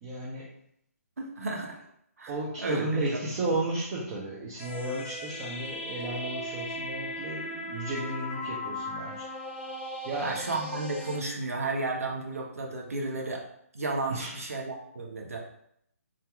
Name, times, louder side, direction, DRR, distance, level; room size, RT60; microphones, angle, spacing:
voice 1, 0.0-0.6 2.3-9.3 9.8-10.5 14.1-14.3, right 2 dB, 25° right, -4 dB, 0.5 m, -34 dB
voice 2, 1.2-1.8 2.2-2.3 2.6-3.2 10.2-13.4 13.7-15.4, right 2 dB, 65° right, 0 dB, 0.8 m, -32 dB
sound 1, 4.6-11.2, left 1 dB, 30° left, 0.7 m, -37 dB
2.7 x 2.4 x 3.4 m, 0.71 s
figure-of-eight pair, 135°, 8 cm